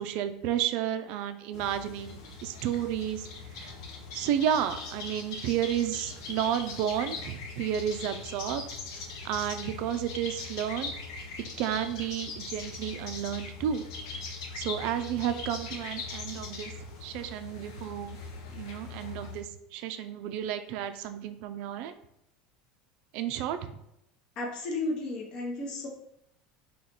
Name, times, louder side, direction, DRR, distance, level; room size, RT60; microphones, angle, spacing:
voice 1, 0.0-3.3 3.6-3.7 4.1-8.6 9.2-10.9 11.6-13.8 14.1-14.2 14.5-16.7 17.0-18.2 18.5-19.5 19.7-21.9 23.1-23.7, right 10 dB, 50° right, 9 dB, 0.4 m, -32 dB
sound 1, 1.5-19.4, left 4 dB, 85° left, 0.9 m, -41 dB
voice 2, 24.4-25.9, left 2 dB, 35° left, -1 dB, 0.8 m, -33 dB
4.0 x 3.0 x 4.4 m, 0.80 s
cardioid pair, 175°, 2 cm